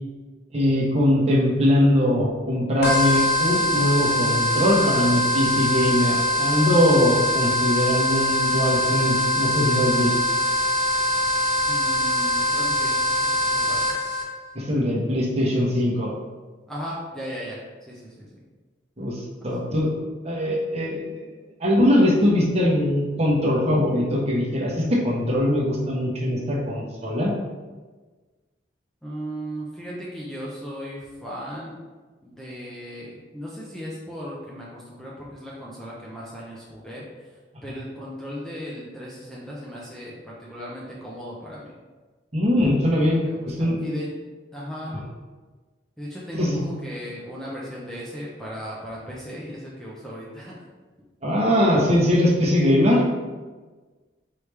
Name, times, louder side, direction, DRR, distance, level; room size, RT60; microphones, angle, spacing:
voice 1, 0.5-10.1 14.5-16.1 19.0-19.9 20.2-21.2 21.6-27.3 42.3-43.8 46.3-46.6 51.2-53.0, left 1 dB, 35° right, -4 dB, 1.0 m, -21 dB
sound 1, 2.8-14.2, equal, 55° left, 0.9 m, -23 dB
voice 2, 11.7-12.9 13.3-13.8 16.7-17.6 17.9-18.4 29.0-31.8 32.2-37.0 37.6-41.7 42.6-44.1 44.5-45.0 46.0-50.6, equal, ahead, -6 dB, 0.6 m, -36 dB
4.7 x 3.3 x 3.3 m, 1.3 s
head